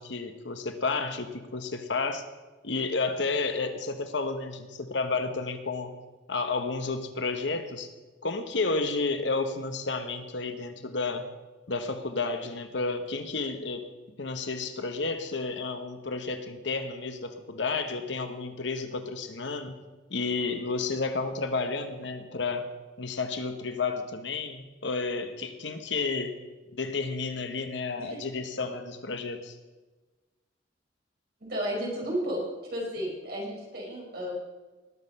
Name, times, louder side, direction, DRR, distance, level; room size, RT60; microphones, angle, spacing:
voice 1, 0.0-2.3 2.6-5.9 6.3-7.9 8.2-11.2 11.7-13.8 14.2-19.8 20.1-22.7 23.0-26.3 26.7-29.5, left 3 dB, 70° left, 8 dB, 1.1 m, -31 dB
voice 2, 31.4-32.4 32.7-34.3, equal, 55° right, -3 dB, 4.8 m, -33 dB
19.5 x 6.6 x 5.5 m, 1.2 s
head